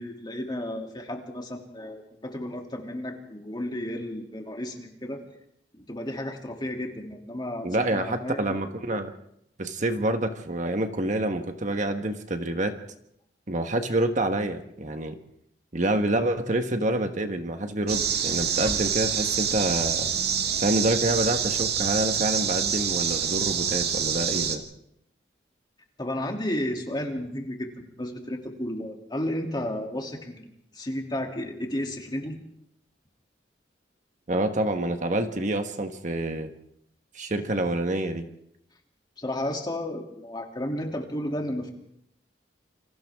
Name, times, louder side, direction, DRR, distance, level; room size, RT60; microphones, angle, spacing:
voice 1, 0.0-5.2 5.7-8.6 26.0-32.4 39.2-41.7, left 1 dB, 25° left, 1 dB, 2.9 m, -33 dB
voice 2, 7.6-9.1 9.6-12.8 13.5-15.2 15.7-20.1 20.6-24.6 34.3-36.5 37.1-38.2, right 1 dB, 45° right, 6 dB, 1.4 m, -27 dB
sound 1, 17.9-24.6, right 8 dB, 60° right, 2.0 m, -26 dB
28.5 x 26.0 x 3.7 m, 0.75 s
head